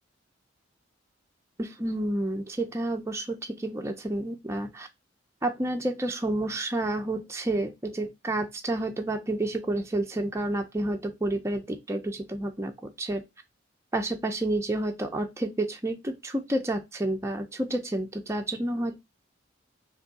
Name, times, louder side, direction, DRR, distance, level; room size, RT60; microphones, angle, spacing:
voice 1, 1.6-4.9 5.4-13.2 13.9-19.0, right 1 dB, 15° right, 0.5 m, -30 dB
3.4 x 2.7 x 3.9 m
head